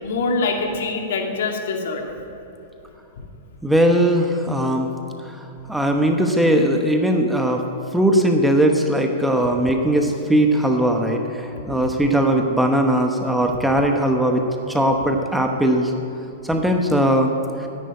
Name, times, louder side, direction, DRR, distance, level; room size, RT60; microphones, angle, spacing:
voice 1, 0.0-2.0, left 3 dB, 70° left, 2 dB, 2.4 m, -24 dB
voice 2, 3.6-4.9 5.2-7.6 7.9-15.9 16.4-17.3 17.6-17.7, right 1 dB, 5° right, 3 dB, 0.9 m, -19 dB
14.0 x 10.5 x 9.7 m, 2.9 s
supercardioid pair, 155°, 0 cm